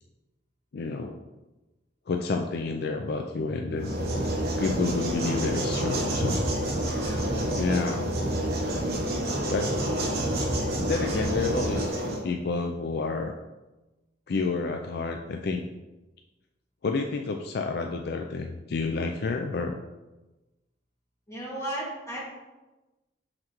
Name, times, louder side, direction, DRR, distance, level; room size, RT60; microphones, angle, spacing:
voice 1, 0.7-1.2 2.1-3.9 4.6-6.4 7.0-7.2 7.5-8.1 9.5-9.7 10.8-11.9 12.2-13.3 14.3-15.6 16.8-19.8, left 4 dB, 55° left, 4 dB, 0.4 m, -29 dB
sound 1, 3.8-12.2, right 1 dB, 55° right, 1.1 m, -28 dB
voice 2, 21.3-22.2, right 1 dB, 15° left, -6 dB, 1.9 m, -34 dB
6.5 x 5.8 x 3.0 m, 1.1 s
head